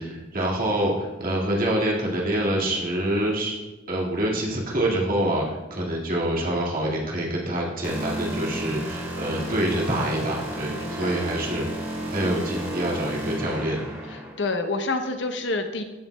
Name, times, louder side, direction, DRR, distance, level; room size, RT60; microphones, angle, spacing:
voice 1, 0.0-3.6 3.9-13.8, right 1 dB, 50° right, -3 dB, 2.1 m, -26 dB
sound 1, 7.8-14.3, right 1 dB, 15° right, 2.2 m, -33 dB
voice 2, 9.3-9.6 10.7-11.4 12.0-12.2 14.4-15.8, left 3 dB, 70° left, 6 dB, 0.8 m, -29 dB
14.5 x 7.2 x 2.3 m, 1.1 s
head